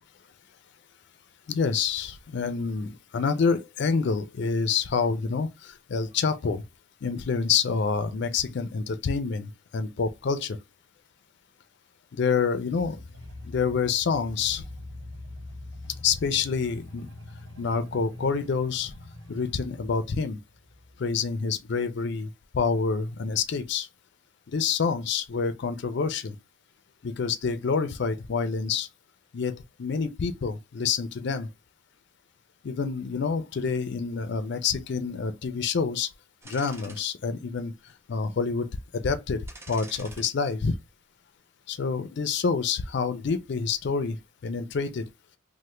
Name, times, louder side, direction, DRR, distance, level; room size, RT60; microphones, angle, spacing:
voice 1, 1.5-6.6 7.0-10.6 12.1-13.0 13.4-14.6 16.0-17.1 17.6-18.9 19.3-20.4 21.0-23.9 24.5-26.4 27.0-28.9 29.3-29.5 29.8-31.5 32.6-36.1 36.4-37.7 38.1-38.7 38.9-40.7 41.7-45.1, left 5 dB, 60° left, 0.4 m, -27 dB
sound 1, 12.7-21.6, left 2 dB, 80° right, 1.1 m, -44 dB
sound 2, 36.4-37.0 37.5-37.6 39.5-40.3 40.7-40.9, right 2 dB, 15° right, 0.5 m, -46 dB
3.2 x 2.1 x 3.0 m
head